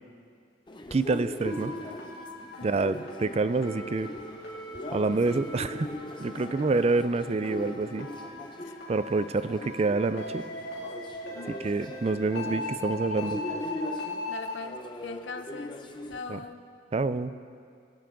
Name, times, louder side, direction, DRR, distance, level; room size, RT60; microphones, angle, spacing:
sound 1, 0.7-16.2, left 1 dB, 25° left, 0.7 m, -40 dB
voice 1, 0.9-1.7 2.6-4.1 4.9-5.9 6.2-8.1 8.9-10.4 11.6-13.4 16.3-16.4 16.9-17.3, right 3 dB, 35° right, 13 dB, 0.4 m, -27 dB
sound 2, 1.4-14.5, left 2 dB, 60° left, 2.4 m, -40 dB
voice 2, 14.3-15.8 16.1-16.6, left 4 dB, 75° left, 7 dB, 0.8 m, -41 dB
22.0 x 9.2 x 3.8 m, 2.3 s
head